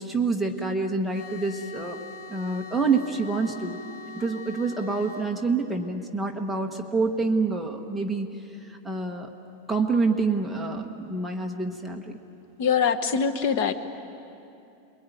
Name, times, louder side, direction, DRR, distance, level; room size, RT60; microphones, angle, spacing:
voice 1, 0.0-2.0 2.3-3.8 4.2-9.3 9.7-12.1, right 4 dB, ahead, 0 dB, 1.1 m, -27 dB
sound 1, 1.1-5.3, left 4 dB, 75° left, 4.1 m, -42 dB
voice 2, 12.6-13.7, left 6 dB, 45° left, 9 dB, 1.3 m, -23 dB
29.0 x 22.5 x 9.2 m, 2.7 s
supercardioid pair, 180°, 0 cm